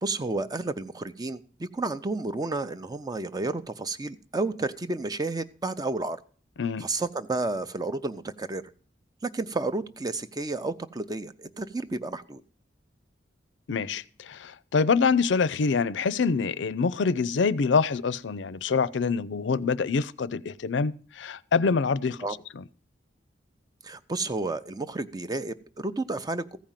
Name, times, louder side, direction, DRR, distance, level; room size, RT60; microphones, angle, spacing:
voice 1, 0.0-6.2 6.8-8.6 9.2-12.4 22.2-22.4 23.8-26.6, right 2 dB, 20° right, 0.5 m, -31 dB
voice 2, 13.7-22.3 22.5-22.6, left 5 dB, 80° left, 0.5 m, -25 dB
14.5 x 5.1 x 7.3 m
head